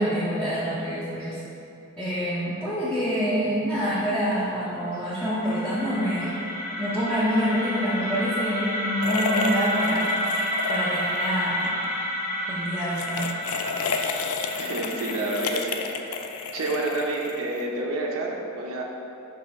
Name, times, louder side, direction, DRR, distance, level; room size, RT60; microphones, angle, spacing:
voice 1, 0.0-1.4 2.0-6.4 6.8-10.2 10.7-11.7 12.5-13.4, equal, 5° left, -10 dB, 0.7 m, -26 dB
sound 1, 4.6-16.6, equal, 40° left, 1.0 m, -30 dB
sound 2, 9.0-11.2 11.5-11.7 12.8-17.8, left 5 dB, 75° left, 0.4 m, -31 dB
voice 2, 14.6-15.8 16.1-16.3 16.5-18.8, right 2 dB, 70° right, -1 dB, 0.8 m, -29 dB
5.5 x 3.4 x 5.2 m, 2.8 s
head